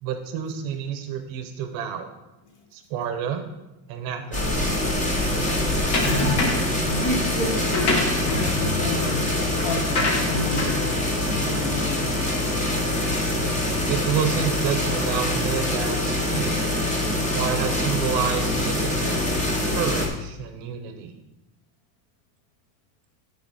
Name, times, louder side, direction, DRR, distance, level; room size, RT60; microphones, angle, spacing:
voice 1, 0.0-2.1 2.7-3.4 3.9-4.8 13.9-16.6 17.3-19.3 19.7-21.1, right 8 dB, 45° right, 6 dB, 0.7 m, -29 dB
sound 1, 4.3-20.1, left 1 dB, 15° left, 0.6 m, -24 dB
sound 2, 5.9-6.8 7.5-12.2, left 3 dB, 85° left, 1.9 m, -27 dB
voice 2, 6.8-10.9 11.2-12.4, left 2 dB, 50° left, 3 dB, 1.3 m, -31 dB
10.0 x 4.1 x 4.1 m, 0.99 s
cardioid pair, 175°, 50 cm